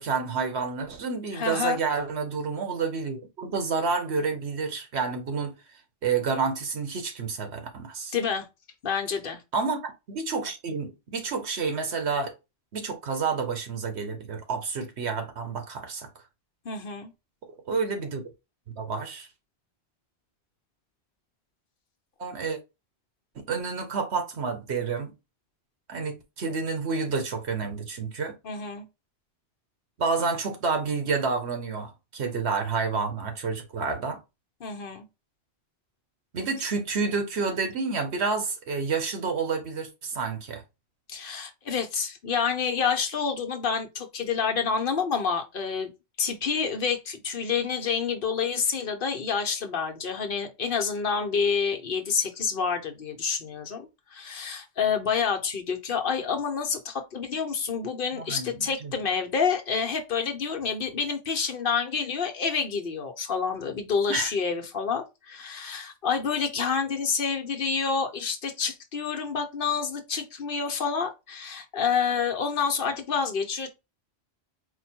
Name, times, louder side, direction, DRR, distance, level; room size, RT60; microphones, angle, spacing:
voice 1, 0.0-5.5 6.0-8.1 9.5-12.3 12.7-16.1 17.7-18.2 18.8-19.3 22.2-22.6 23.4-25.1 25.9-28.3 30.0-34.2 36.3-40.6 58.1-58.9 64.1-64.3, right 4 dB, 80° right, 1.3 m, -29 dB
voice 2, 1.3-1.8 8.1-8.5 8.8-9.4 16.6-17.1 28.4-28.8 34.6-35.1 41.1-45.9 46.2-73.7, left 6 dB, 60° left, 0.9 m, -28 dB
4.4 x 2.2 x 4.3 m
omnidirectional pair, 1.1 m